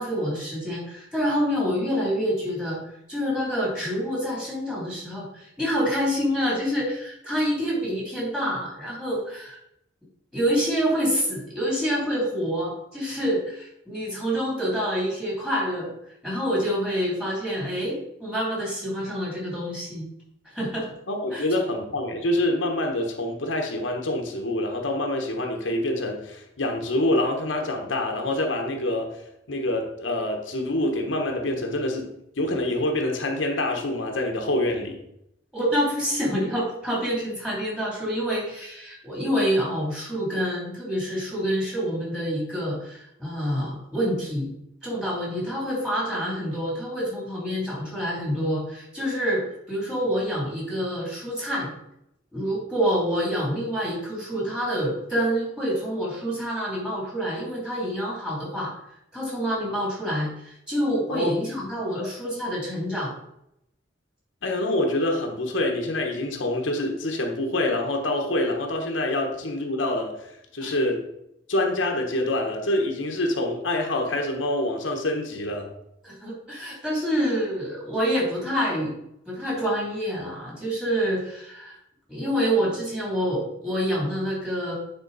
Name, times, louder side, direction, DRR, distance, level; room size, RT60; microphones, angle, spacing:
voice 1, 0.0-2.8 3.1-9.6 10.3-15.9 16.2-20.1 20.5-20.9 21.3-21.5 35.5-44.5 44.8-51.7 52.3-58.7 59.1-63.1 70.6-70.7 76.0-79.0 79.3-81.7 82.1-84.7, equal, 5° right, -5 dB, 2.9 m, -27 dB
voice 2, 21.1-29.1 29.5-32.1 32.4-35.0 61.1-61.3 61.9-62.1 64.4-71.0 71.5-75.7, left 1 dB, 75° left, 2 dB, 1.2 m, -26 dB
9.4 x 4.3 x 4.0 m, 0.80 s
head